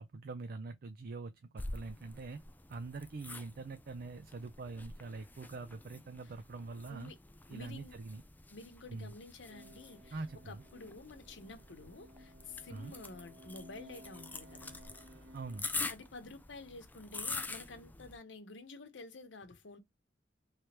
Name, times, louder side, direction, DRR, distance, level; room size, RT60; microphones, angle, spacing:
voice 1, 0.0-2.4 2.7-7.1 7.5-8.2 8.9-9.1 10.1-10.6 12.7-12.9 15.3-15.7, right 3 dB, 55° right, 0.5 m, -44 dB
sound 1, 1.6-18.2, left 3 dB, 10° left, 0.4 m, -46 dB
voice 2, 7.5-8.0 8.5-14.8 15.7-19.8, left 3 dB, 85° left, 0.9 m, -50 dB
sound 2, 9.5-15.6, equal, 70° right, 1.1 m, -57 dB
3.3 x 3.2 x 2.9 m
head